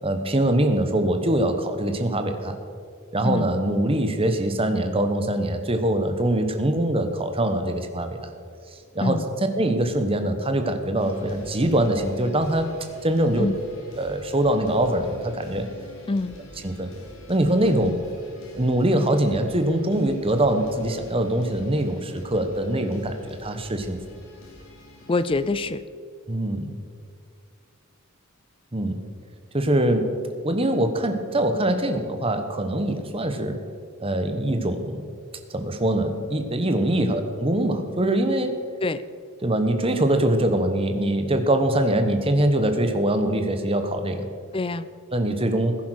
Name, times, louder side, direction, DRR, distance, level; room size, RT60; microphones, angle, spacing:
voice 1, 0.0-2.6 3.1-8.3 8.9-9.2 9.6-12.7 13.0-13.5 14.0-15.7 16.6-16.9 17.3-17.9 18.5-24.0 26.3-26.7 28.7-29.0 29.5-30.1 30.4-33.6 34.0-35.0 35.5-38.6 39.4-44.3 45.1-45.8, right 1 dB, 25° right, 7 dB, 1.1 m, -23 dB
sound 1, 11.0-25.6, left 1 dB, 65° left, 3.1 m, -46 dB
voice 2, 16.1-16.4 17.8-18.0 25.1-25.8 37.0-37.1 38.8-39.0 44.5-44.9, left 3 dB, 25° left, 15 dB, 0.4 m, -25 dB
16.0 x 10.5 x 6.4 m, 2.3 s
head